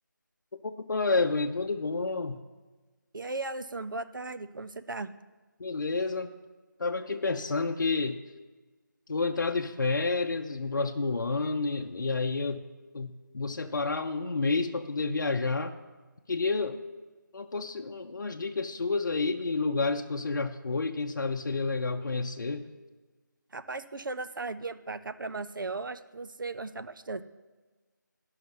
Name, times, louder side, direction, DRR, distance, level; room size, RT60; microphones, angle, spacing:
voice 1, 0.6-2.4 5.6-6.3 6.8-8.2 9.1-12.6 12.9-15.7 16.3-16.8 17.3-22.6, left 3 dB, 65° left, 4 dB, 0.6 m, -29 dB
voice 2, 3.1-5.1 23.5-27.2, right 3 dB, 75° right, 11 dB, 0.6 m, -37 dB
11.0 x 5.7 x 5.5 m, 1.3 s
figure-of-eight pair, 170°, 11 cm